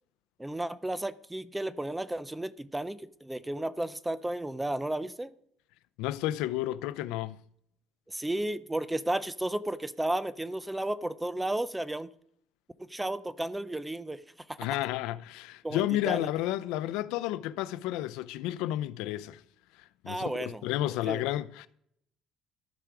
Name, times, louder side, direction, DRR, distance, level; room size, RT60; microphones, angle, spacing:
voice 1, 0.4-5.3 8.1-12.1 12.8-14.2 14.5-14.6 15.6-16.3 20.1-20.7 21.0-21.2, right 1 dB, 5° right, 0.4 m, -33 dB
voice 2, 6.0-7.4 14.6-19.4 20.0-21.7, left 14 dB, 85° left, 0.5 m, -31 dB
13.5 x 4.8 x 6.0 m
cardioid pair, 160°, 0 cm